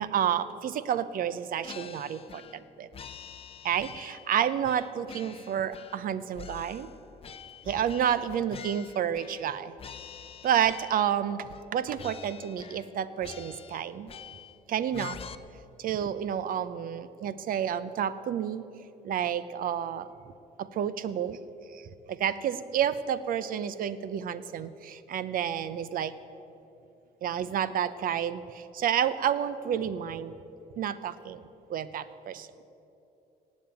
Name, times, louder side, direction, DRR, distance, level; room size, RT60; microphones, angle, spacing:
voice 1, 0.0-2.9 3.6-6.9 7.7-9.7 10.4-14.1 14.7-15.2 15.8-18.6 19.0-20.1 20.6-21.4 21.7-26.1 27.2-30.3 30.8-31.4 31.7-32.5, right 9 dB, 55° right, 15 dB, 0.7 m, -30 dB
sound 1, 1.6-2.6 2.9-4.3 4.6-6.1 6.3-9.5 9.8-11.2 11.5-11.7 12.0-12.9 13.2-14.6 14.9-15.3, left 7 dB, 35° left, 0.7 m, -46 dB
18.0 x 7.5 x 8.8 m, 2.8 s
cardioid pair, 110°, 17 cm